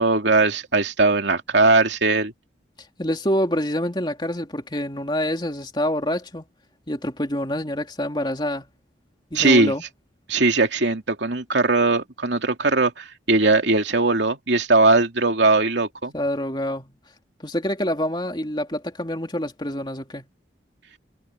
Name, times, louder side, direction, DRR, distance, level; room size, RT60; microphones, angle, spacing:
voice 1, 0.0-2.3 9.3-9.7 10.3-16.1, right 3 dB, 75° right, 2.7 m, -19 dB
voice 2, 3.0-6.4 6.9-8.6 9.3-9.8 16.1-16.9 17.4-20.3, left 1 dB, 25° left, 3.0 m, -26 dB
head